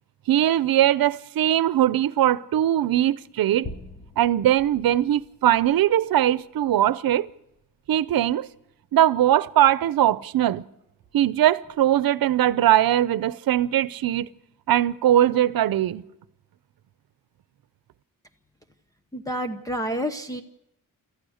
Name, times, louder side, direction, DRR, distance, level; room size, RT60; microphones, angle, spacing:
voice 1, 0.3-3.7 4.2-7.3 7.9-8.5 8.9-10.6 11.1-14.3 14.7-16.0, right 12 dB, 85° right, 0.8 m, -20 dB
sound 1, 3.2-8.6 8.9-9.1 9.4-9.5 9.9-11.3 11.6-12.1 13.6-14.3 14.7-14.8, left 2 dB, 25° left, 1.2 m, -47 dB
voice 2, 19.1-20.4, equal, 10° left, 0.9 m, -29 dB
30.0 x 14.5 x 6.5 m
wide cardioid pair, 175°, 34 cm